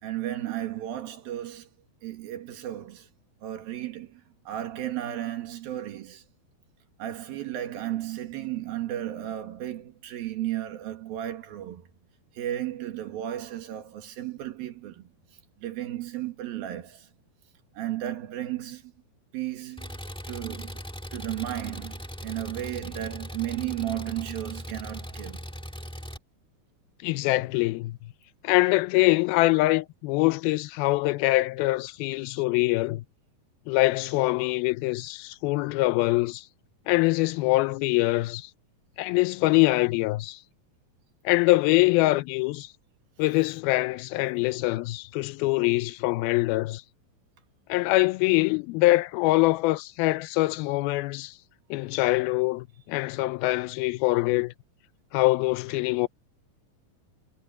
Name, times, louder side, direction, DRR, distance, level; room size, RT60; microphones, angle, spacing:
voice 1, 0.0-1.7 2.0-3.1 3.4-6.2 7.0-11.9 12.4-15.1 15.6-17.1 17.8-18.9 19.3-20.0 20.3-20.8 21.1-25.4, right 13 dB, 75° right, 3.6 m, -34 dB
Engine, 19.8-26.2, equal, ahead, 1.5 m, -39 dB
voice 2, 27.0-28.0 28.4-33.0 33.7-36.4 36.9-38.5 39.0-40.4 41.3-42.7 43.2-46.8 47.7-51.3 51.7-54.5 55.1-56.1, left 20 dB, 85° left, 2.5 m, -24 dB
omnidirectional pair, 4.3 m